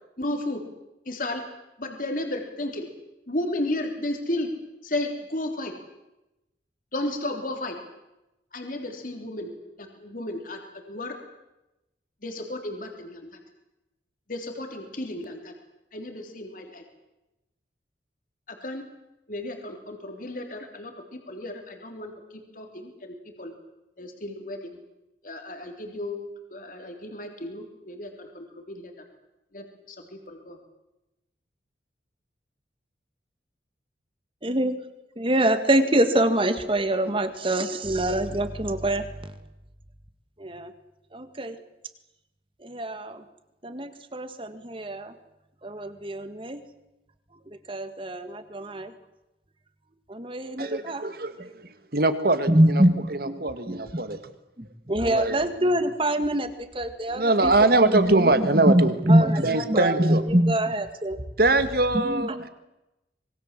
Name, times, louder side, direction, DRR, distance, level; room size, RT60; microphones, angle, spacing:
voice 1, 0.2-0.6 1.1-1.4 1.8-2.9 3.3-4.5 4.8-5.7 6.9-7.8 8.5-11.2 12.2-13.3 14.3-15.5 15.9-16.8 18.5-18.9 19.3-22.1 22.5-23.5 24.0-24.6 25.2-28.9 29.5-30.6, left 1 dB, 50° left, 4 dB, 3.5 m, -33 dB
voice 2, 34.4-34.8 35.2-39.1 40.4-40.7 41.1-41.6 42.6-43.2 43.6-45.1 45.6-46.6 47.5-48.9 50.1-51.0 51.4-51.5 52.5-53.4 53.7-54.0 54.6-61.2 61.9-62.5, right 1 dB, 30° right, 10 dB, 1.9 m, -25 dB
voice 3, 50.6-51.5 51.9-52.8 53.1-54.2 54.9-55.4 57.1-60.2 61.4-62.5, right 2 dB, 55° right, 10 dB, 2.0 m, -23 dB
25.5 x 22.5 x 7.6 m, 0.95 s
head